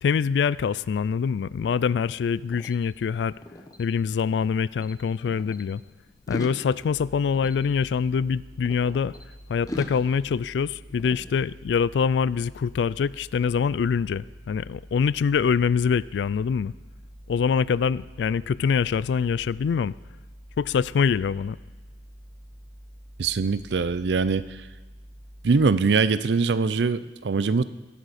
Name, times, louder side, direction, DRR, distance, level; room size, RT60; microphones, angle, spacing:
voice 1, 0.0-3.4 3.8-5.8 6.3-9.1 9.5-16.7 17.3-19.9 20.6-21.6, left 6 dB, 75° left, 20 dB, 0.3 m, -24 dB
sound 1, 1.6-4.5 4.8-5.6 6.1-9.2 9.7-11.9, left 1 dB, 20° left, 1.0 m, -42 dB
sound 2, 6.8-25.7, equal, 20° right, 4.3 m, -47 dB
voice 2, 23.2-24.6 25.4-27.6, right 4 dB, 70° right, 15 dB, 0.5 m, -22 dB
17.0 x 12.5 x 4.2 m, 1.2 s
head